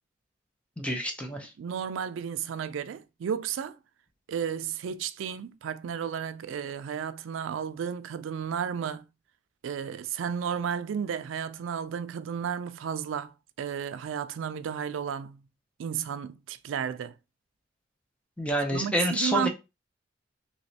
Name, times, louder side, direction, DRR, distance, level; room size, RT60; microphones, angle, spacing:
voice 1, 0.8-1.5 18.4-19.5, equal, 5° left, 0.6 m, -28 dB
voice 2, 1.6-3.8 4.3-9.1 9.6-15.4 15.8-17.1 18.7-19.5, right 7 dB, 80° right, 0.3 m, -33 dB
3.1 x 3.0 x 2.7 m
head